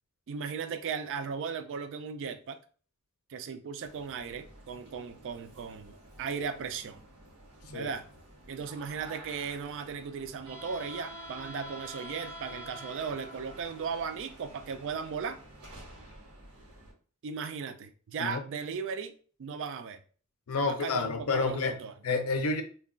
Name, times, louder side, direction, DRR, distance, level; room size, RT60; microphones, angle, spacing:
voice 1, 0.3-2.6 3.3-7.0 7.7-8.0 8.5-15.4 17.2-19.1 19.4-20.0 20.6-21.9, right 6 dB, 60° right, 0.3 m, -37 dB
sound 1, 3.8-16.9, right 1 dB, 90° right, 1.0 m, -48 dB
voice 2, 20.5-22.6, left 4 dB, 70° left, 0.5 m, -30 dB
2.2 x 2.2 x 3.6 m
head